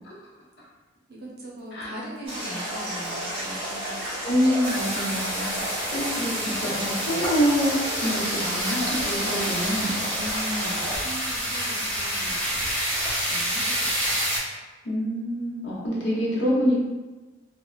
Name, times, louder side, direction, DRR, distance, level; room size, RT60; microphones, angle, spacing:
voice 1, 1.1-3.9 10.1-12.6 13.3-14.1, equal, 55° right, -4 dB, 0.7 m, -39 dB
sound 1, 2.3-11.0, right 1 dB, 30° right, 1.5 m, -32 dB
voice 2, 4.2-9.9 14.8-16.8, equal, 65° left, -5 dB, 0.8 m, -26 dB
sound 2, 4.6-14.4, equal, 10° left, 0.9 m, -28 dB
3.3 x 2.1 x 2.3 m, 1.2 s
head